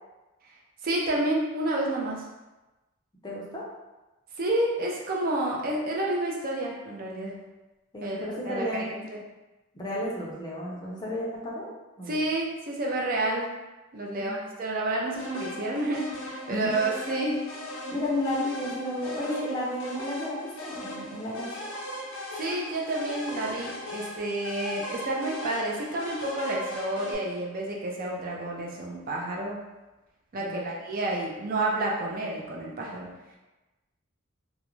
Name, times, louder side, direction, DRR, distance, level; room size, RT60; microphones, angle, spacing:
voice 1, 0.8-2.2 4.4-7.3 8.0-9.2 12.1-13.5 13.9-17.4 22.4-29.6 30.3-33.1, right 1 dB, 45° right, -2 dB, 0.4 m, -30 dB
voice 2, 3.2-3.6 7.9-8.9 9.7-11.7 12.0-12.2 14.1-14.3 16.5-16.7 17.9-21.5 30.4-30.7, left 1 dB, 20° left, -5 dB, 0.5 m, -32 dB
sound 1, 15.1-27.1, equal, 85° left, 0.6 m, -38 dB
2.3 x 2.0 x 3.0 m, 1.1 s
head